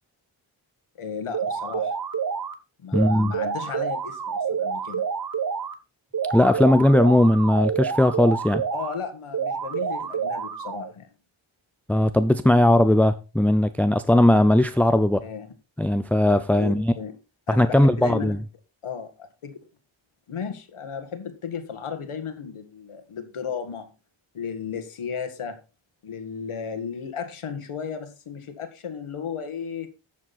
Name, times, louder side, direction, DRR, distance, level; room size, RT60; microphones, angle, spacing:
voice 1, 1.0-1.9 2.8-5.0 8.7-11.1 15.2-15.5 16.6-17.1 17.5-18.4 18.8-19.6 20.3-23.9 24.3-25.6 26.0-29.9, left 6 dB, 85° left, 1.9 m, -34 dB
sound 1, 1.3-2.5 2.9-5.7 6.1-8.9 9.3-10.9, right 6 dB, 45° right, 1.1 m, -28 dB
voice 2, 2.9-3.3 6.3-8.6 11.9-15.2 15.8-16.9 17.5-18.4, left 1 dB, 5° left, 0.5 m, -18 dB
12.0 x 7.4 x 4.2 m
wide cardioid pair, 120°, 49 cm